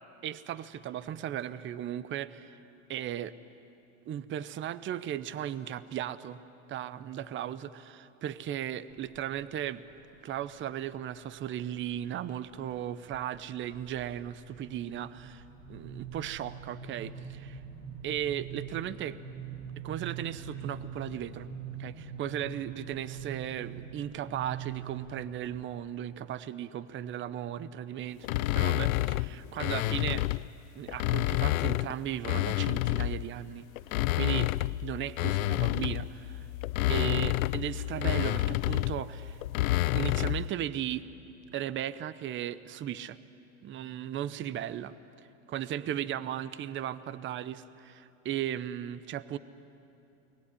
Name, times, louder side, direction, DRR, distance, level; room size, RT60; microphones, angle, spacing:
voice 1, 0.2-2.6 2.9-3.4 4.1-6.4 6.7-9.8 10.2-17.6 18.0-19.2 19.8-21.5 21.8-30.3 30.8-33.6 34.1-36.5 36.9-39.4 39.9-41.0 41.5-43.2 43.6-44.9 45.5-49.4, right 11 dB, 30° right, 16 dB, 0.8 m, -36 dB
sound 1, 8.9-9.5 9.9-10.5 11.1-12.0 12.4-12.7 13.1-25.6, right 6 dB, 45° right, 3.5 m, -44 dB
sound 2, 28.2-30.5 30.9-33.3 33.8-40.5, left 16 dB, 80° left, 0.6 m, -29 dB
29.5 x 20.5 x 9.9 m, 2.8 s
supercardioid pair, 120°, 41 cm